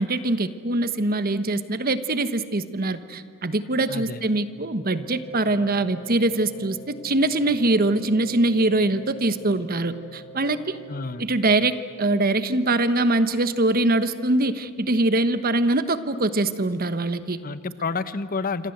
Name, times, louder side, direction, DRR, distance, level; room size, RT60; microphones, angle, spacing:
voice 1, 0.0-10.8 11.2-17.4, right 2 dB, 45° right, 12 dB, 1.2 m, -23 dB
voice 2, 3.9-4.2 10.9-11.2 17.4-18.7, left 4 dB, 45° left, 13 dB, 0.9 m, -29 dB
sound 1, 4.8-11.1, right 1 dB, 90° left, 4.3 m, -44 dB
26.5 x 26.5 x 8.0 m, 2.3 s
head